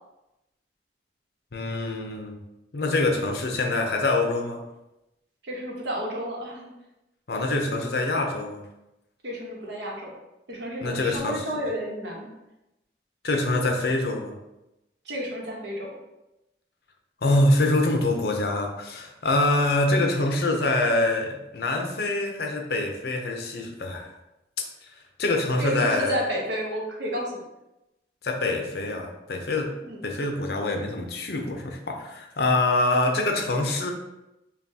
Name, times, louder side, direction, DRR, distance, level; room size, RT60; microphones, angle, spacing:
voice 1, 1.5-2.4 2.7-4.6 7.3-8.6 10.8-11.4 13.2-14.4 17.2-24.1 25.2-26.2 28.2-29.8 30.0-33.9, left 2 dB, 60° left, 3 dB, 0.6 m, -25 dB
voice 2, 5.4-6.7 9.2-10.1 10.5-12.3 15.0-15.9 25.6-27.4 29.8-30.0, equal, 80° right, -2 dB, 1.0 m, -31 dB
5.7 x 2.3 x 2.7 m, 0.93 s
head